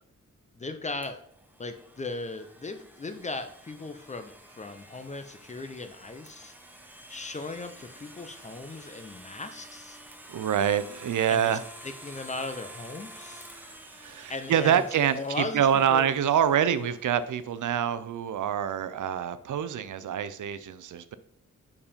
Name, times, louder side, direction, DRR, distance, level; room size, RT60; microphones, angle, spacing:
voice 1, 0.5-1.2 1.6-6.5 7.1-10.0 11.3-13.5 14.3-14.8 15.1-16.1, left 3 dB, 25° left, 8 dB, 0.6 m, -37 dB
Domestic sounds home sounds, 1.0-17.8, right 1 dB, 5° right, 0.8 m, -49 dB
voice 2, 10.3-11.6 13.6-21.2, right 9 dB, 85° right, 14 dB, 0.5 m, -26 dB
5.4 x 4.9 x 5.0 m, 0.63 s
wide cardioid pair, 175°, 30 cm